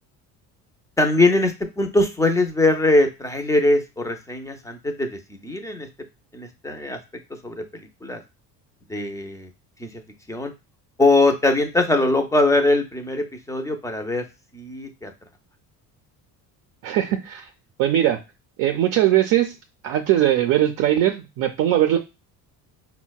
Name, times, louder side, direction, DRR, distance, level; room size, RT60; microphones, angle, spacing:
voice 1, 1.0-5.9 6.3-7.0 7.4-8.2 8.9-9.5 9.8-9.9 10.3-10.5 11.0-14.2 14.5-15.1, left 2 dB, 10° left, 5 dB, 0.4 m, -21 dB
voice 2, 16.8-17.5 17.8-18.2 18.6-19.5 19.8-22.0, right 12 dB, 60° right, 4 dB, 0.5 m, -20 dB
4.3 x 2.1 x 2.2 m, 0.26 s
cardioid pair, 110°, 37 cm